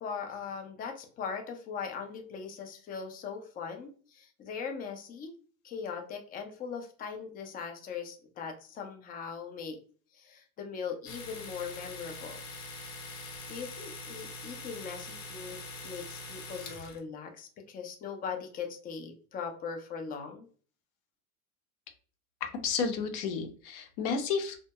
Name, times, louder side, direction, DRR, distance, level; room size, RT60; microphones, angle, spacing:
voice 1, 0.0-5.3 5.6-9.8 10.1-12.4 13.5-15.6 15.8-20.5, left 6 dB, 20° left, 5 dB, 0.3 m, -40 dB
Domestic sounds home sounds, 11.1-17.0, left 2 dB, 75° left, 1.0 m, -43 dB
voice 2, 22.5-24.6, left 5 dB, 55° left, 6 dB, 0.7 m, -31 dB
2.2 x 2.1 x 2.7 m, 0.41 s
supercardioid pair, 120°, 43 cm